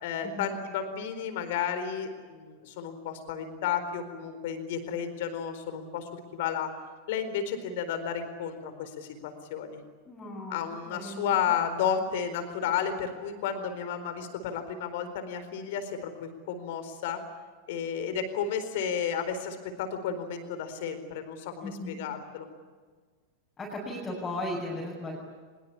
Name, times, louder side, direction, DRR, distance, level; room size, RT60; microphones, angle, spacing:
voice 1, 0.0-6.7 7.1-9.8 10.5-17.2 17.7-22.5, left 7 dB, 50° left, 9 dB, 4.3 m, -32 dB
voice 2, 10.1-10.6 10.9-11.4 21.6-22.0 23.6-25.2, left 1 dB, 15° left, -4 dB, 6.9 m, -36 dB
24.0 x 22.5 x 8.6 m, 1.5 s
figure-of-eight pair, 90°, 0 cm